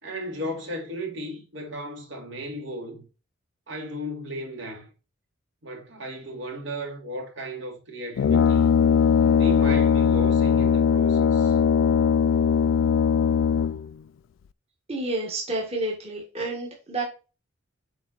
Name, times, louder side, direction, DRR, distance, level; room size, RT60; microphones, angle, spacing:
voice 1, 0.0-3.1 3.7-4.9 5.6-8.7 9.3-11.6, equal, 65° right, 2.5 m, -35 dB
Brass instrument, 8.2-13.9, left 7 dB, 75° left, 0.3 m, -20 dB
voice 2, 14.9-17.0, right 2 dB, 30° right, 1.7 m, -29 dB
7.7 x 4.8 x 4.2 m
head